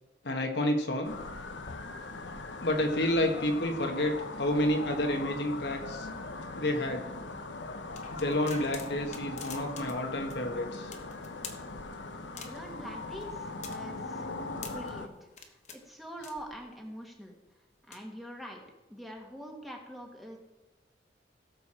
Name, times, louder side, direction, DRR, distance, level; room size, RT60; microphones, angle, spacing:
voice 1, 0.2-1.1 2.6-6.1 6.5-7.1 8.2-10.9, left 1 dB, 65° left, 3 dB, 1.5 m, -29 dB
sound 1, 1.0-15.1, left 3 dB, 85° left, 1.0 m, -40 dB
sound 2, 8.0-10.0 10.3-10.4 10.9-11.6 12.4-12.8 13.2-14.9 15.3-15.8 16.2-16.8 17.7-18.0, left 5 dB, 40° left, 1.2 m, -46 dB
voice 2, 12.3-14.3 14.6-17.3 17.9-18.6 18.9-20.4, equal, ahead, 0 dB, 1.6 m, -44 dB
17.0 x 7.0 x 4.4 m, 1.0 s
head